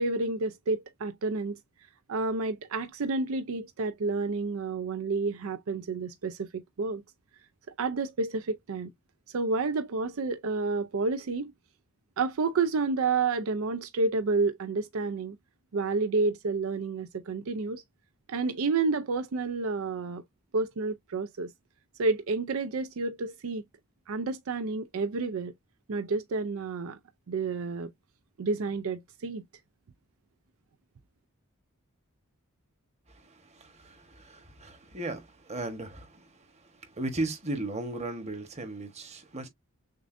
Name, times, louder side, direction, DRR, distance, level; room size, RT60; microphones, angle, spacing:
voice 1, 0.0-1.6 2.1-7.0 7.8-8.9 9.3-11.5 12.2-15.4 15.7-17.8 18.3-20.2 20.5-21.5 22.0-23.6 24.1-25.5 25.9-27.0 27.3-27.9 28.4-29.4, right 3 dB, 70° right, 0.5 m, -30 dB
voice 2, 33.1-39.5, right 2 dB, 30° right, 1.2 m, -37 dB
6.5 x 2.5 x 2.6 m
head